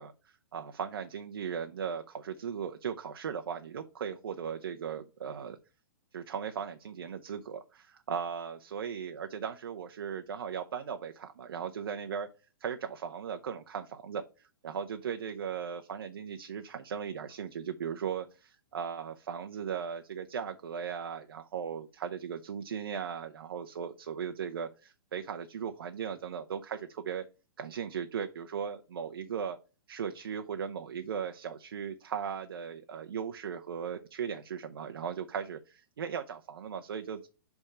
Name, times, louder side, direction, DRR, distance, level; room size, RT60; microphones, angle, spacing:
voice 1, 0.0-5.6 6.1-12.3 12.6-27.2 27.6-29.6 29.9-37.3, right 7 dB, 80° right, 7 dB, 0.6 m, -37 dB
6.6 x 3.5 x 4.2 m, 0.33 s
hypercardioid pair, 155°, 12 cm